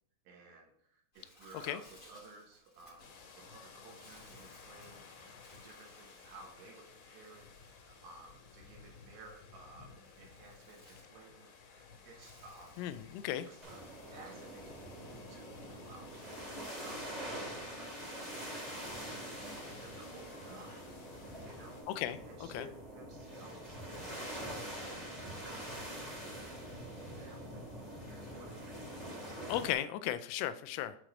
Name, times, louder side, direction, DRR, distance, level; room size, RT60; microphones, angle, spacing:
voice 1, 0.3-3.0 3.4-9.9 10.2-12.8 13.4-14.8 15.3-16.1 16.8-18.8 19.4-20.8 21.4-21.9 22.3-24.6 24.9-26.9 27.2-27.7 28.1-28.7, right 2 dB, 75° right, 1 dB, 2.6 m, -56 dB
Bird, 1.1-21.0, left 1 dB, 30° left, 0.8 m, -65 dB
sound 1, 3.0-21.8, left 5 dB, 65° left, 3.4 m, -56 dB
voice 2, 12.8-13.5 21.9-22.7 29.5-31.0, left 12 dB, 90° left, 12 dB, 3.1 m, -36 dB
sound 2, 13.6-29.7, right 1 dB, ahead, 1.4 m, -45 dB
8.7 x 3.1 x 5.0 m, 0.68 s
omnidirectional pair, 5.5 m